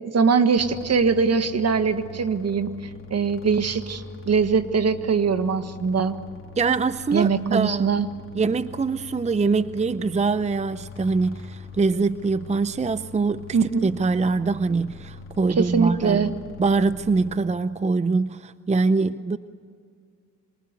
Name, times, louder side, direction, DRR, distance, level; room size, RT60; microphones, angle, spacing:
voice 1, 0.0-2.7 3.1-6.2 7.1-8.1 13.5-13.9 15.6-16.3, right 5 dB, 55° right, 10 dB, 1.6 m, -22 dB
sound 1, 0.6-17.3, left 4 dB, 45° left, 3.2 m, -43 dB
voice 2, 6.6-7.9 8.3-19.4, right 4 dB, 20° right, 14 dB, 0.6 m, -24 dB
27.0 x 23.5 x 8.3 m, 2.1 s
cardioid pair, 75°, 31 cm